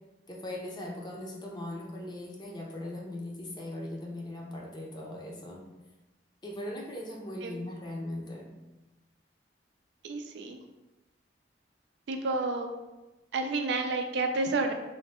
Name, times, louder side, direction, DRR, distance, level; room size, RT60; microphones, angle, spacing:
voice 1, 0.3-5.6 6.4-8.5, left 1 dB, 25° left, -2 dB, 0.6 m, -39 dB
voice 2, 10.0-10.6 12.1-12.7 13.3-14.7, right 3 dB, 75° right, 5 dB, 0.4 m, -30 dB
3.1 x 2.2 x 4.1 m, 1.1 s
head